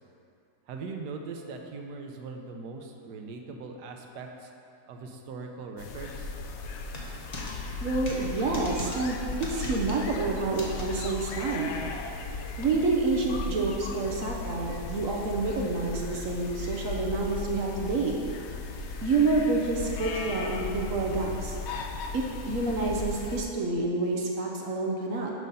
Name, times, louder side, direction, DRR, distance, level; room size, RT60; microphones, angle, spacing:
voice 1, 0.7-4.5 4.9-6.3, right 4 dB, 90° right, 3 dB, 1.3 m, -40 dB
sound 1, 5.8-23.4, left 3 dB, 70° left, 0.6 m, -36 dB
sound 2, 6.9-7.5 8.1-8.2 8.5-9.0 9.4-10.0 10.6-10.8 11.7-11.8, left 1 dB, 30° left, 0.8 m, -39 dB
voice 2, 7.8-11.8 12.6-18.2 19.0-21.6 22.1-25.3, right 3 dB, 60° right, -1 dB, 1.0 m, -28 dB
6.3 x 5.5 x 5.3 m, 2.6 s
omnidirectional pair, 1.7 m